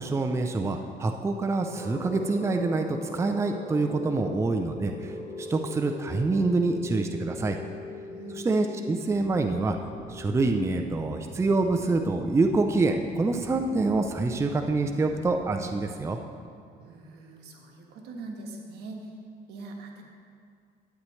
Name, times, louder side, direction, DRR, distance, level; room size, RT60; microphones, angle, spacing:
voice 1, 0.0-7.6 8.4-9.8 10.1-16.2, right 3 dB, 15° right, 5 dB, 0.5 m, -26 dB
sound 1, 1.4-15.3, left 2 dB, 20° left, 1.9 m, -42 dB
voice 2, 8.0-8.4 16.7-19.1 19.5-20.0, right 2 dB, 75° right, 1 dB, 1.4 m, -42 dB
sound 2, 9.1-15.8, right 3 dB, 35° right, 2.5 m, -46 dB
11.5 x 8.9 x 3.2 m, 2.2 s
cardioid pair, 110°, 17 cm